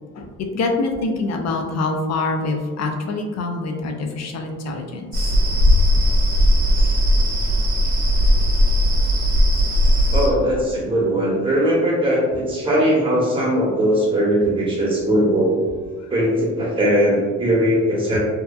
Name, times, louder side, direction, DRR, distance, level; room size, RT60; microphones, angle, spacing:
voice 1, 0.2-5.3, left 3 dB, 60° left, 3 dB, 0.5 m, -25 dB
sound 1, 5.1-10.3, equal, 65° right, 0.7 m, -17 dB
voice 2, 10.1-15.6 16.1-18.2, equal, 15° right, -5 dB, 1.0 m, -19 dB
2.8 x 2.2 x 2.3 m, 1.4 s
cardioid pair, 90°, 30 cm